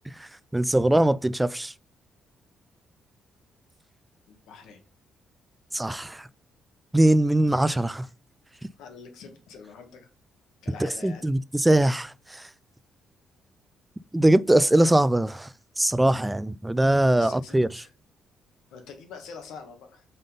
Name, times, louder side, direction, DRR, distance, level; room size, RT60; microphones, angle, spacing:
voice 1, 0.1-1.7 5.7-6.3 6.9-8.0 10.8-12.5 14.1-15.5 15.8-17.7, right 1 dB, 10° right, 0.3 m, -22 dB
voice 2, 4.3-4.8 7.6-7.7 8.8-10.1 10.6-11.3 17.1-17.9 18.7-20.0, left 5 dB, 85° left, 1.4 m, -45 dB
5.4 x 3.7 x 5.2 m
cardioid pair, 90°, 0 cm